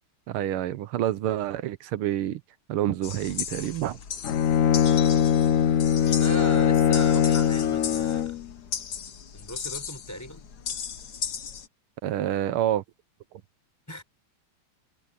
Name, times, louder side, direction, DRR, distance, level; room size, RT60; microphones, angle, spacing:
voice 1, 0.3-2.4 2.7-4.0 12.0-12.8 13.3-13.4, right 12 dB, 90° right, 1.7 m, -28 dB
sound 1, 3.0-11.7, left 7 dB, 50° left, 1.7 m, -36 dB
Bowed string instrument, 4.2-8.4, left 9 dB, 70° left, 0.7 m, -21 dB
voice 2, 5.0-5.3 6.0-8.4 9.3-10.5 13.9-14.0, equal, 5° left, 5.5 m, -37 dB
omnidirectional pair, 2.3 m